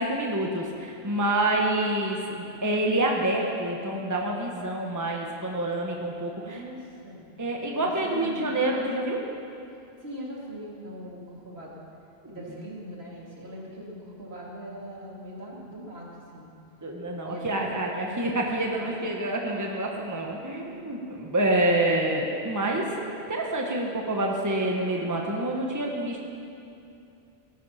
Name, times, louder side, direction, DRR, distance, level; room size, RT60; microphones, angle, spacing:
voice 1, 0.0-6.6 7.4-9.2 12.2-12.3 16.8-26.2, right 1 dB, 15° right, 0 dB, 1.3 m, -27 dB
voice 2, 6.3-7.3 7.8-8.5 10.0-11.8 12.3-16.5 17.1-19.1 20.7-21.0, equal, 65° right, -3 dB, 2.9 m, -41 dB
18.5 x 12.0 x 5.8 m, 2.6 s
omnidirectional pair, 1.1 m